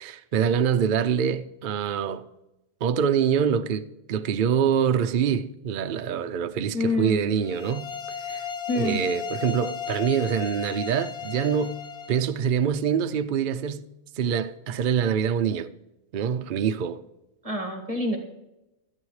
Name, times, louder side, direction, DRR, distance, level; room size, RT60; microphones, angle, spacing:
voice 1, 0.0-2.2 2.8-7.9 8.2-8.5 8.8-11.8 12.1-13.8 14.2-15.7 16.1-17.0, right 7 dB, 55° right, 0.5 m, -25 dB
voice 2, 6.7-7.2 8.7-9.1 17.4-18.2, left 1 dB, 25° right, 2.0 m, -26 dB
sound 1, 7.4-12.2, left 7 dB, 55° left, 1.4 m, -35 dB
17.0 x 13.0 x 3.2 m
omnidirectional pair, 1.4 m